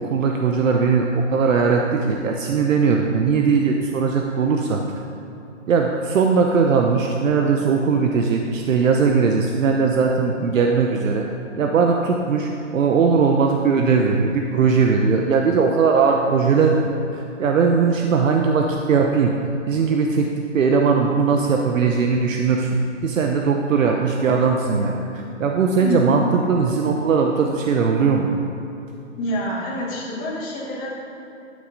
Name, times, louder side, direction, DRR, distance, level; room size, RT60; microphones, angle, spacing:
voice 1, 0.0-4.8 5.7-11.3 11.6-16.8 17.1-20.3 20.5-22.7 23.0-28.3, right 5 dB, 80° right, 2 dB, 0.8 m, -19 dB
voice 2, 25.8-26.2 29.2-30.9, equal, 20° left, -8 dB, 2.2 m, -26 dB
11.5 x 6.5 x 3.9 m, 2.9 s
hypercardioid pair, 150°, 38 cm